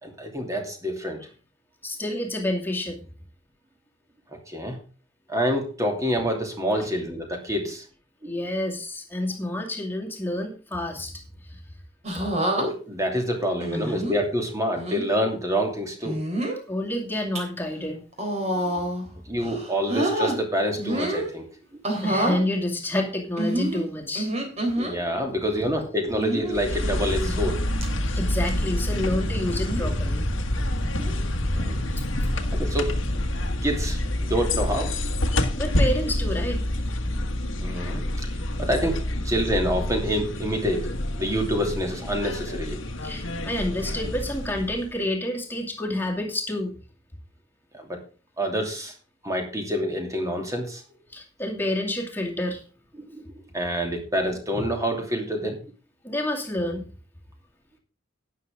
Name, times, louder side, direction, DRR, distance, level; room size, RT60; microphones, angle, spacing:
voice 1, 0.0-1.2 4.5-4.8 5.3-7.8 8.2-8.4 12.6-16.2 18.6-18.8 19.3-21.4 24.8-27.6 31.5-31.8 32.5-32.9 33.6-34.9 37.6-38.3 38.6-40.9 41.2-42.8 47.7-48.0 48.4-48.9 49.2-50.8 53.0-53.2 53.5-55.7, equal, 15° right, 3 dB, 2.7 m, -27 dB
voice 2, 1.8-3.0 8.2-11.1 11.5-11.6 16.7-18.0 22.0-24.3 28.2-30.2 35.6-36.6 43.0-46.7 51.1-52.6 56.0-56.9, left 1 dB, 10° left, 0 dB, 2.4 m, -28 dB
sound 1, 12.0-12.7 13.6-14.2 14.7-15.0 16.0-16.6 17.1-17.4 18.1-19.1 19.4-20.4 20.8-21.3 21.8-22.4 23.4-24.9 26.2-26.6 27.2-27.5 27.8-27.9 29.5-29.9 31.0-31.2, right 1 dB, 35° right, 3.5 m, -27 dB
sound 2, 26.5-45.0, left 1 dB, 75° left, 1.6 m, -27 dB
12.0 x 9.8 x 3.6 m, 0.35 s
head